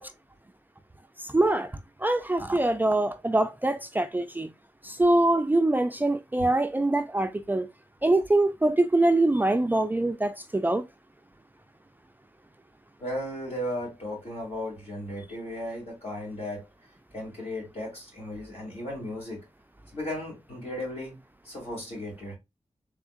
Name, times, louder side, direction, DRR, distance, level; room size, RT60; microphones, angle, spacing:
voice 1, 1.2-1.7 2.0-4.5 4.8-7.7 8.0-10.8, right 2 dB, 15° right, 0.3 m, -24 dB
voice 2, 13.0-16.7 17.1-19.4 19.9-21.2 21.4-22.4, left 1 dB, 60° left, 2.6 m, -35 dB
3.6 x 3.5 x 2.4 m
wide cardioid pair, 95°, 12 cm